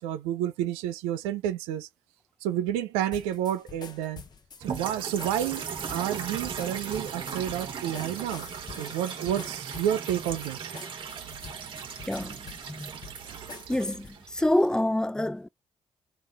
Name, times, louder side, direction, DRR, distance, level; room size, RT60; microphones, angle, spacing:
voice 1, 0.0-1.9 2.4-4.2 4.6-8.5 8.8-10.7, right 11 dB, 80° right, 0.7 m, -30 dB
sound 1, 3.1-14.2, left 5 dB, 45° left, 1.4 m, -47 dB
sound 2, 4.6-14.8, right 7 dB, 55° right, 1.6 m, -38 dB
voice 2, 13.7-14.1 14.3-15.5, left 1 dB, 5° left, 0.5 m, -26 dB
3.6 x 3.2 x 4.2 m
hypercardioid pair, 45°, 10 cm